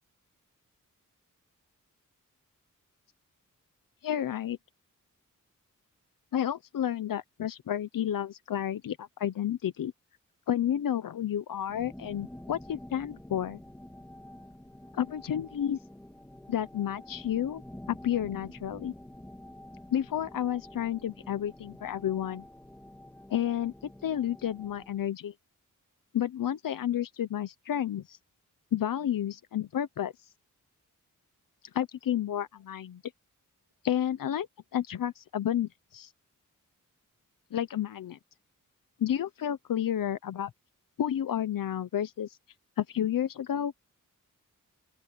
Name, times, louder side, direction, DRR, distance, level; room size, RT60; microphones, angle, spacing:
voice 1, 4.0-4.6 6.3-9.9 10.5-13.6 14.9-15.8 16.5-17.6 17.9-18.9 19.9-22.4 23.3-23.7 24.0-25.3 26.1-28.2 28.7-30.1 31.7-33.0 33.8-34.5 34.7-36.1 37.5-38.2 39.0-40.5 41.0-42.4 42.8-43.7, left 10 dB, 85° left, 0.8 m, -31 dB
sound 1, 11.7-25.0, left 1 dB, 5° left, 2.4 m, -48 dB
open air
wide cardioid pair, 175°, 32 cm